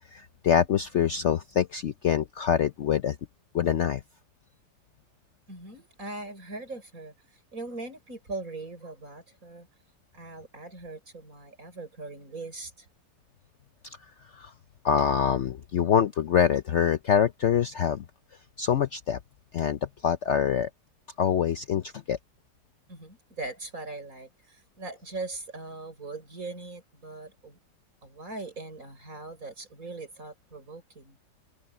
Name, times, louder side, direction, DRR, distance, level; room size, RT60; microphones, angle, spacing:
voice 1, 0.1-3.2 3.5-4.0 13.8-14.0 14.3-14.5 14.8-18.0 18.6-19.2 19.5-20.7 21.2-22.2, left 8 dB, 60° left, 0.8 m, -25 dB
voice 2, 5.5-7.1 7.5-9.7 10.1-12.9 22.9-27.6 28.0-31.2, right 2 dB, 55° right, 6.6 m, -40 dB
omnidirectional pair, 1.7 m